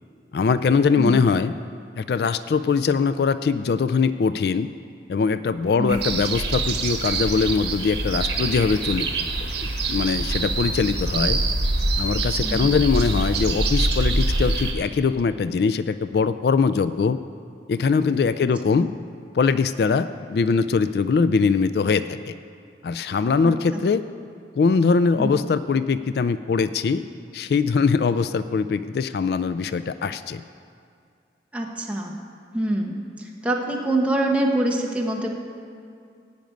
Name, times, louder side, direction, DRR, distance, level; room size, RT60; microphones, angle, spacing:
voice 1, 0.3-1.5 1.9-4.7 5.1-9.1 9.9-11.4 12.0-17.2 17.7-18.9 19.3-22.3 22.8-24.0 24.6-27.0 27.3-30.4, left 5 dB, 65° left, 12 dB, 0.3 m, -22 dB
sound 1, 5.9-14.7, right 2 dB, 75° right, 1.5 m, -25 dB
voice 2, 31.5-32.2 32.5-35.3, right 1 dB, 5° right, -1 dB, 1.2 m, -25 dB
15.5 x 5.2 x 9.2 m, 2.3 s
head